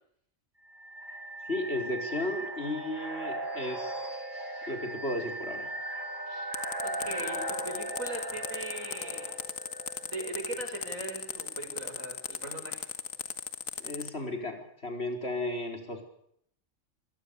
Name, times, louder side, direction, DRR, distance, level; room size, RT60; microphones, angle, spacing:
sound 1, 0.6-11.4, right 1 dB, 35° right, 7.0 m, -38 dB
voice 1, 1.5-4.0 4.7-5.7 13.8-16.0, left 1 dB, 50° left, 4 dB, 4.8 m, -34 dB
sound 2, 6.5-14.1, left 7 dB, 90° left, 1.9 m, -37 dB
voice 2, 6.8-9.4 10.0-12.9, right 2 dB, 85° right, 4 dB, 6.8 m, -40 dB
26.0 x 18.0 x 6.9 m, 0.70 s
omnidirectional pair, 1.4 m